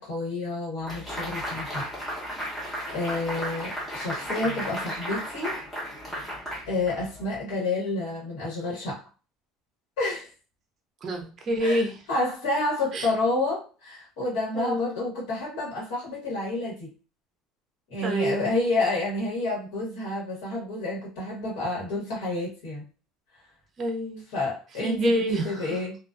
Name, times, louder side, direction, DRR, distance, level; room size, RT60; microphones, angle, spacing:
voice 1, 0.0-1.9 2.9-5.6 6.7-9.0 10.0-10.3 11.6-11.8 12.1-16.9 17.9-22.8 24.3-26.0, left 2 dB, 85° left, -5 dB, 1.2 m, -29 dB
sound 1, 0.9-7.3, equal, 10° left, 0.8 m, -34 dB
voice 2, 11.0-12.0 12.9-13.1 14.5-15.0 18.0-18.5 23.8-24.3 24.7-25.8, right 1 dB, 30° right, 3 dB, 0.6 m, -28 dB
2.4 x 2.3 x 2.4 m, 0.34 s
cardioid pair, 165°, 0 cm